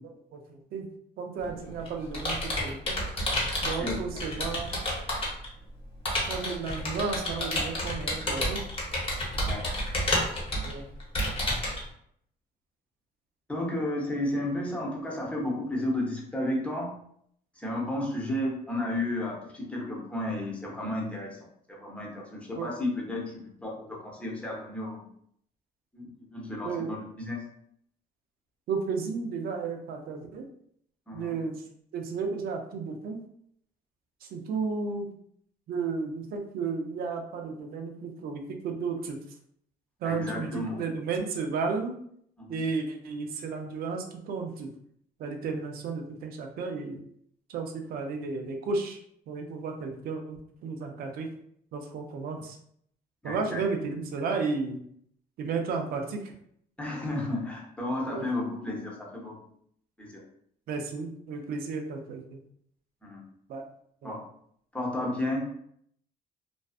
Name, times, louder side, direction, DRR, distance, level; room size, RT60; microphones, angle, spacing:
voice 1, 0.3-0.9 1.2-2.9 3.6-4.7 6.3-8.6 10.6-10.9 22.6-22.7 26.6-26.9 28.7-30.5 31.1-31.6 31.9-33.2 34.2-35.1 35.7-39.2 40.0-41.9 42.5-44.7 45.2-47.0 47.5-49.0 49.3-51.3 51.7-52.6 53.2-54.8 55.4-56.3 58.1-58.3 60.7-62.4 63.5-63.6 64.0-64.1, right 4 dB, 60° right, 4 dB, 0.5 m, -33 dB
Computer keyboard, 1.4-5.5 6.1-11.8, left 1 dB, 35° left, 0.9 m, -30 dB
voice 2, 3.8-4.5 9.5-10.1 13.5-16.9 17.6-21.4 21.7-25.0 25.9-26.0 26.3-27.4 31.1-31.3 40.0-40.8 42.4-42.6 53.2-53.6 56.8-59.4 60.0-60.2 63.0-63.2 64.0-64.2 64.7-65.5, left 1 dB, 5° left, -3 dB, 0.8 m, -32 dB
2.5 x 2.2 x 2.4 m, 0.67 s
cardioid pair, 110°, 17 cm